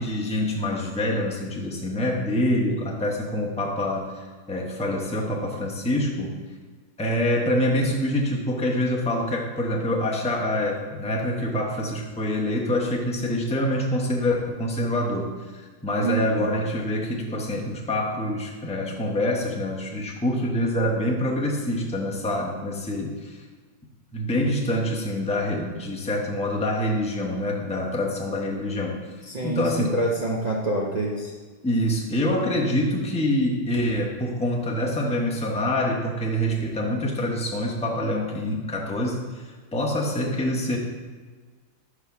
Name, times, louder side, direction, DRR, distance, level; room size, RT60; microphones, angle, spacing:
voice 1, 0.0-6.3 7.0-15.3 15.8-23.4 24.1-29.0 29.4-30.0 31.6-39.4 39.7-40.8, left 1 dB, 10° left, -1 dB, 0.4 m, -26 dB
voice 2, 16.0-16.6 29.2-31.3, right 2 dB, 75° right, -2 dB, 0.3 m, -27 dB
6.1 x 4.9 x 5.7 m, 1.5 s
omnidirectional pair, 1.8 m